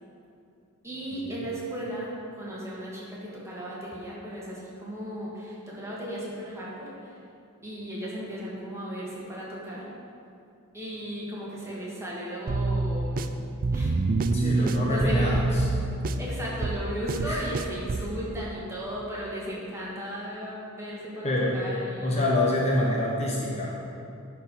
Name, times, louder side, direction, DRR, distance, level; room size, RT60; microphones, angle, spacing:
voice 1, 0.8-7.1 7.6-9.9 10.7-13.2 13.7-14.0 14.5-15.5 16.2-22.3, equal, 15° right, -6 dB, 2.0 m, -36 dB
sound 1, 12.5-18.1, right 3 dB, 40° right, 0.4 m, -27 dB
voice 2, 14.3-15.7 17.2-17.4 21.2-21.7 22.0-23.8, left 1 dB, 30° left, -3 dB, 0.9 m, -26 dB
10.5 x 4.6 x 5.5 m, 2.6 s
head